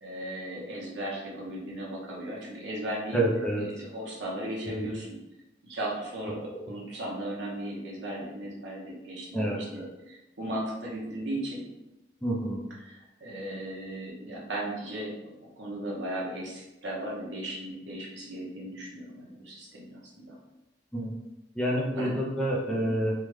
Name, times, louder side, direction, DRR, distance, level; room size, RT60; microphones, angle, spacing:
voice 1, 0.0-3.2 3.6-5.2 5.6-11.6 12.8-15.1 15.6-20.3 21.9-22.1 22.7-22.9, right 1 dB, 75° right, -4 dB, 0.9 m, -36 dB
voice 2, 3.1-3.9 4.8-4.9 6.5-6.6 9.3-9.8 12.2-12.6 20.9-21.1 21.6-23.1, right 1 dB, 5° left, -4 dB, 0.4 m, -28 dB
3.5 x 2.2 x 3.0 m, 0.98 s
head